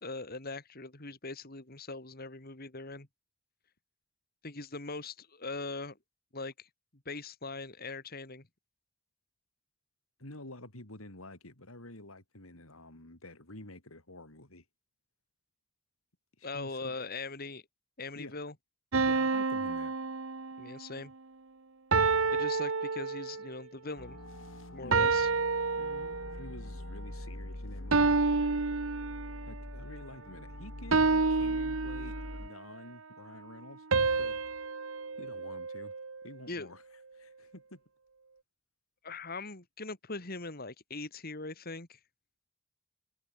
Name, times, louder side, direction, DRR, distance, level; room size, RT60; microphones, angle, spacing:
voice 1, 0.0-3.1 4.4-6.0 6.3-6.7 7.0-8.4 16.4-17.6 18.0-18.5 20.6-21.1 22.3-24.2 24.7-25.3 36.5-36.7 39.0-42.0, left 3 dB, 45° left, 2.8 m, -41 dB
voice 2, 10.2-14.6 16.4-17.0 18.2-18.3 19.0-20.0 24.8-25.1 25.8-28.2 29.5-33.9 34.2-34.4 35.2-35.9 36.2-36.8 37.1-37.8, left 1 dB, 90° left, 5.4 m, -49 dB
sound 1, 18.9-20.9 21.9-23.6 24.9-26.5 27.9-29.6 30.9-32.5 33.9-36.2, right 4 dB, 70° right, 1.1 m, -29 dB
sound 2, 24.0-32.5, left 1 dB, 65° left, 1.8 m, -43 dB
head